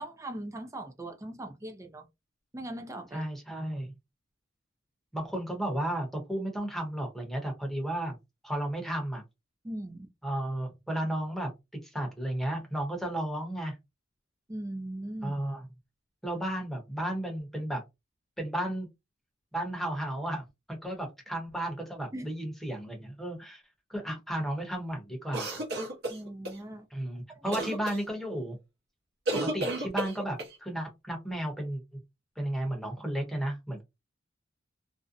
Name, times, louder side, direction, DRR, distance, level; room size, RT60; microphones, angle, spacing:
voice 1, 0.0-2.1 2.5-3.3 3.6-3.7 9.6-10.1 14.5-15.4 22.1-22.3 26.1-26.9 27.3-27.6, right 1 dB, 15° right, 0.4 m, -40 dB
voice 2, 3.1-3.9 5.1-8.2 8.4-9.2 10.2-11.5 11.8-13.7 15.2-15.6 16.2-17.8 18.4-18.9 19.5-23.6 23.9-25.6 26.9-28.6 29.3-31.8 32.4-33.8, right 1 dB, ahead, 0.8 m, -33 dB
sound 1, 25.3-26.6 27.5-28.0 29.3-30.6, right 1 dB, 55° right, 0.9 m, -32 dB
2.6 x 2.1 x 2.5 m
head